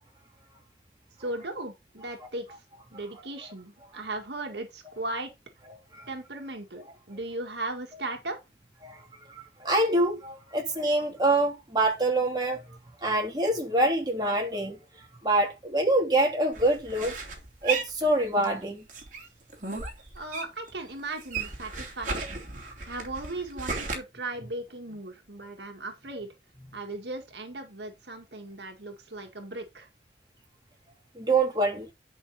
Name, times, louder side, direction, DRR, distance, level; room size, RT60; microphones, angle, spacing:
voice 1, 1.2-2.5 2.9-5.3 6.1-8.4 20.1-26.3 26.7-29.9, right 2 dB, 75° right, 2.0 m, -37 dB
voice 2, 9.6-12.6 13.0-14.8 15.2-17.2 17.6-18.8 31.1-31.9, right 2 dB, 25° right, 3.1 m, -25 dB
sound 1, 16.5-18.6 18.9-20.7 21.0-24.0, right 4 dB, 45° right, 3.0 m, -35 dB
11.0 x 5.7 x 4.1 m
head